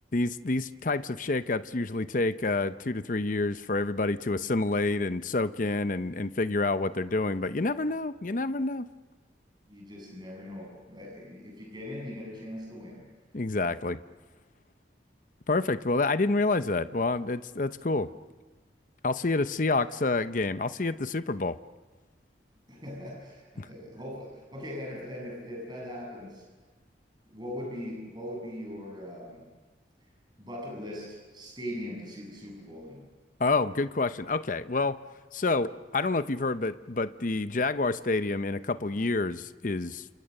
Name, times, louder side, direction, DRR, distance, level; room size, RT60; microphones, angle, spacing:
voice 1, 0.1-8.9 13.3-14.0 15.5-18.1 19.0-21.6 23.6-23.7 33.4-35.0 35.3-40.1, left 3 dB, 45° left, 12 dB, 0.7 m, -28 dB
voice 2, 9.7-13.1 22.7-26.4 27.2-29.5 30.4-33.0, equal, 25° right, -1 dB, 7.4 m, -40 dB
30.0 x 27.5 x 6.6 m, 1.3 s
head